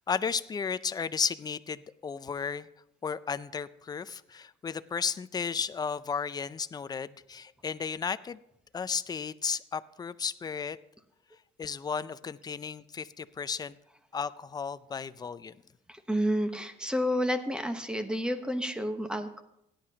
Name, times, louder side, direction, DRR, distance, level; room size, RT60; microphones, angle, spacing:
voice 1, 0.1-2.7 3.0-8.4 8.7-10.8 11.6-13.8 14.1-15.6, left 6 dB, 25° left, 15 dB, 0.5 m, -34 dB
voice 2, 15.9-19.4, equal, 5° right, 8 dB, 1.1 m, -30 dB
17.0 x 10.0 x 2.9 m, 0.79 s
cardioid pair, 110°, 17 cm